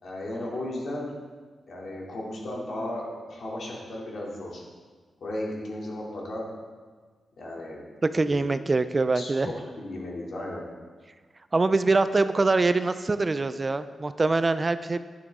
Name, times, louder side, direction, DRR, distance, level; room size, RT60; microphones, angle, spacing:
voice 1, 0.0-1.1 1.7-4.6 5.2-6.4 7.4-7.8 8.2-8.4 9.1-10.6, left 1 dB, 65° left, -3 dB, 2.7 m, -35 dB
voice 2, 8.1-9.5 11.5-15.0, right 3 dB, 30° right, 12 dB, 0.4 m, -24 dB
12.0 x 9.2 x 3.6 m, 1.5 s
wide cardioid pair, 120°, 0 cm